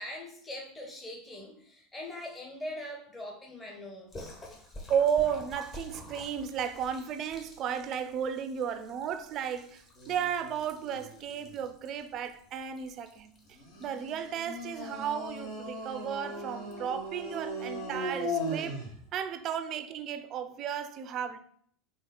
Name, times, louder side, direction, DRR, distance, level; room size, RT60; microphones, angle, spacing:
voice 1, 0.0-4.5, left 1 dB, 15° left, 0.9 m, -42 dB
Splash splatter, 4.1-19.1, left 1 dB, 30° left, 1.3 m, -52 dB
voice 2, 4.9-13.3 13.8-18.8 19.1-21.4, right 8 dB, 45° right, 0.4 m, -33 dB
sound 1, 10.0-11.6 13.5-19.0, equal, 60° left, 1.8 m, -38 dB
4.2 x 3.1 x 3.8 m
figure-of-eight pair, 80°, 0 cm